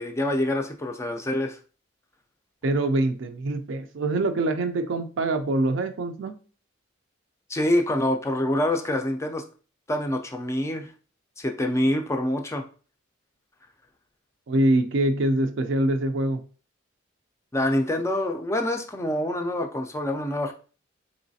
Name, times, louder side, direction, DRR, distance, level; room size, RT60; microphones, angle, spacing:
voice 1, 0.0-1.6 7.5-9.4 9.9-10.9 11.4-12.6 17.5-20.5, left 1 dB, 15° left, 0.3 m, -26 dB
voice 2, 2.6-6.3 14.5-16.4, right 1 dB, 70° right, 0.4 m, -24 dB
3.9 x 3.1 x 2.6 m
head